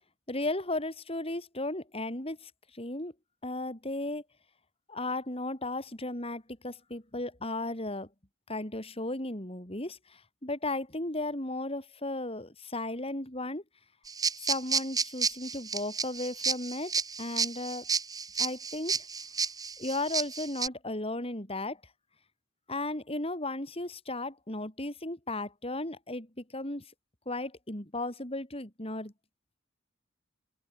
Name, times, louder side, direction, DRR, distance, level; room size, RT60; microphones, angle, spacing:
voice 1, 0.3-3.1 3.4-4.2 4.9-8.1 8.5-13.6 14.4-16.9 17.2-17.9 18.4-19.1 19.8-21.8 22.7-26.9 27.3-29.1, left 2 dB, 30° left, 5.4 m, -35 dB
sound 1, 14.1-20.7, right 5 dB, 20° right, 2.5 m, -31 dB
open air
head